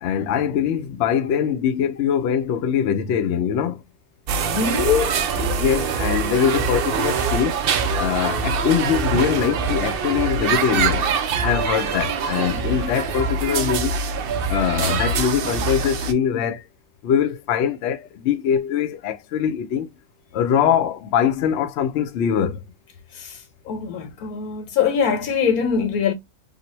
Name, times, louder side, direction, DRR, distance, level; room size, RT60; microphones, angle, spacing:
voice 1, 0.0-3.8 4.3-4.5 5.4-7.6 8.0-14.0 14.5-16.6 17.0-19.9 20.3-22.6, left 8 dB, 65° left, 0.7 m, -22 dB
sound 1, 4.3-16.1, right 5 dB, 80° right, 0.5 m, -24 dB
voice 2, 4.5-5.2 12.5-12.6 23.1-26.1, left 6 dB, 85° left, 1.3 m, -23 dB
3.9 x 2.0 x 3.0 m
omnidirectional pair, 1.5 m